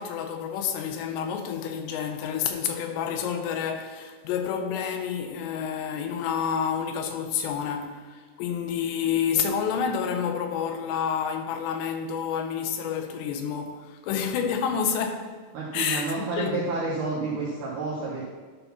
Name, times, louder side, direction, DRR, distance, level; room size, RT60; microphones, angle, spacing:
voice 1, 0.0-15.4 15.7-16.8, left 7 dB, 80° left, 2.8 m, -29 dB
voice 2, 15.5-18.3, right 3 dB, 75° right, 1.9 m, -30 dB
11.5 x 4.0 x 5.6 m
omnidirectional pair, 5.1 m